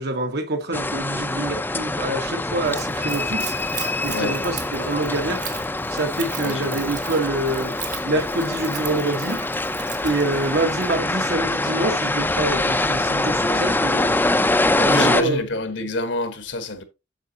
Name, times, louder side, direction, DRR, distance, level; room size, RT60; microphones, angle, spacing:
voice 1, 0.0-3.5 4.0-5.4 5.9-7.7 8.0-9.4 10.0-14.2 14.8-15.4, right 2 dB, 60° right, 1.3 m, -26 dB
sound 1, 0.7-15.2, left 2 dB, 10° left, 0.5 m, -24 dB
Splash splatter / Trickle dribble, 2.6-11.0, right 9 dB, 45° right, 1.4 m, -38 dB
voice 2, 4.0-4.4 6.4-6.9 13.4-13.6 14.8-16.8, left 2 dB, 75° left, 1.4 m, -28 dB
9.1 x 7.0 x 2.8 m
head